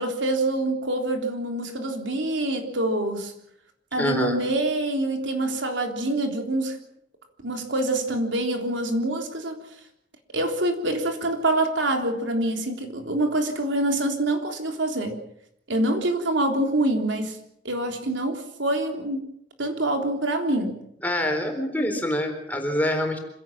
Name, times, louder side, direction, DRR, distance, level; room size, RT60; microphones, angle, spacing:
voice 1, 0.0-3.3 3.9-6.8 7.4-9.6 10.3-15.2 15.7-17.4 17.7-19.3 19.6-20.8, right 1 dB, 80° right, 4 dB, 3.5 m, -25 dB
voice 2, 4.0-4.4 21.0-23.2, left 1 dB, 10° left, 4 dB, 4.1 m, -25 dB
26.5 x 16.5 x 7.5 m, 0.73 s
head